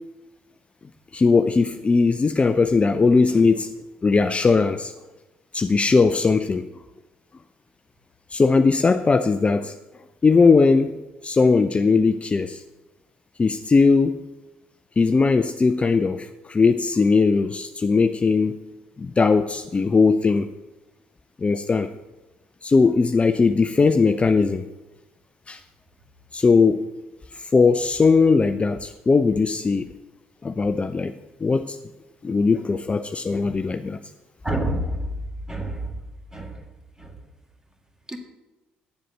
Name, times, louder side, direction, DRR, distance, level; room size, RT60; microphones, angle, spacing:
voice 1, 1.1-3.7 4.0-4.9 5.5-6.7 8.3-9.7 10.2-11.0 11.2-12.6 13.4-14.2 15.0-18.6 19.0-20.5 21.4-21.9 22.6-24.7 25.5-25.6 26.3-26.9 27.3-29.9 30.4-31.1 31.4-31.8 32.2-34.0, left 4 dB, 25° left, 9 dB, 0.5 m, -19 dB
voice 2, 34.4-35.1 35.5-35.9 36.3-36.6 37.0-37.1 38.1-38.2, right 1 dB, 10° right, 4 dB, 1.9 m, -27 dB
9.4 x 7.6 x 6.6 m, 1.1 s
figure-of-eight pair, 50°, 5 cm